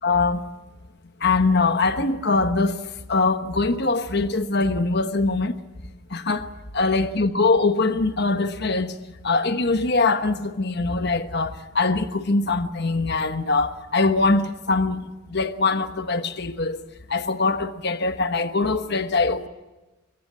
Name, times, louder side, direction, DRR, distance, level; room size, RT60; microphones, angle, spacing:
voice 1, 0.0-0.5 1.2-2.8 3.1-5.6 6.1-6.5 6.7-8.9 9.2-15.0 15.3-16.8 17.1-19.5, left 3 dB, 50° left, 1.2 m, -22 dB
23.5 x 23.5 x 7.5 m
head